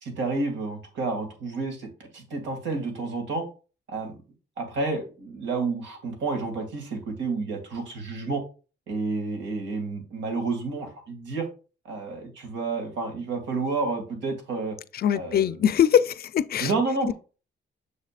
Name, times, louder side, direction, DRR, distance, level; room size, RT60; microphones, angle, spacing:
voice 1, 0.0-3.4 3.9-4.2 4.6-8.4 8.9-11.5 11.8-14.8 15.1-15.5 16.6-17.1, right 3 dB, 85° right, 2.5 m, -30 dB
voice 2, 14.9-16.7 17.1-17.2, left 9 dB, 55° left, 0.5 m, -22 dB
6.9 x 6.5 x 2.5 m
cardioid pair, 110°, 19 cm